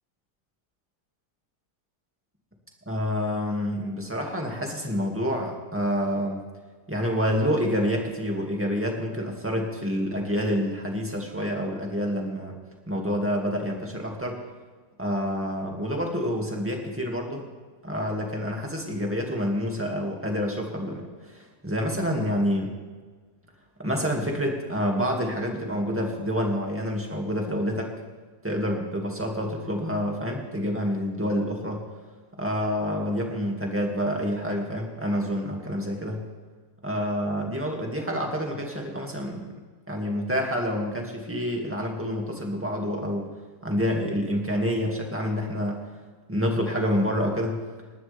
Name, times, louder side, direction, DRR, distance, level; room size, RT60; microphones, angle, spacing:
voice 1, 2.9-6.4 6.9-12.6 12.9-14.4 15.0-17.4 17.8-22.7 23.8-27.9 28.4-31.8 32.4-36.2 36.8-39.5 39.9-43.3 43.6-45.8 46.3-47.6, equal, 10° right, 0 dB, 2.3 m, -28 dB
26.5 x 12.5 x 3.6 m, 1.4 s
omnidirectional pair, 1.7 m